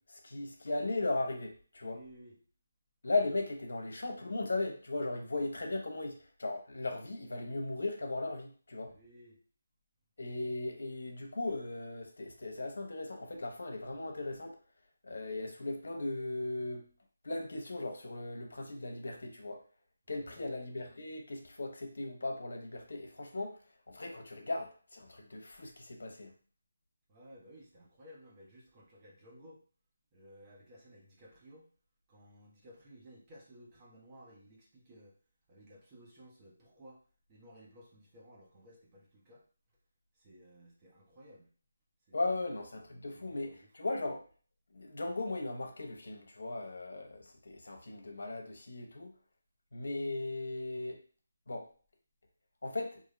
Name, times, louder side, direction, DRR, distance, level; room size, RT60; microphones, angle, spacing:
voice 1, 0.0-2.0 3.0-8.9 10.2-14.6 15.0-16.9 17.2-19.6 20.1-23.6 23.9-26.3 42.1-44.2 44.7-49.1 49.7-51.0 51.5-51.7 52.6-53.0, left 2 dB, 75° left, 3 dB, 0.9 m, -37 dB
voice 2, 1.8-2.4 8.8-9.4 20.1-20.4 27.1-29.6 30.1-31.7 32.1-35.2 35.5-37.0 37.3-39.4 40.1-41.5 42.1-42.5 43.1-43.9, equal, 25° right, -3 dB, 1.1 m, -57 dB
3.7 x 2.6 x 3.2 m, 0.40 s
figure-of-eight pair, 165°, 0 cm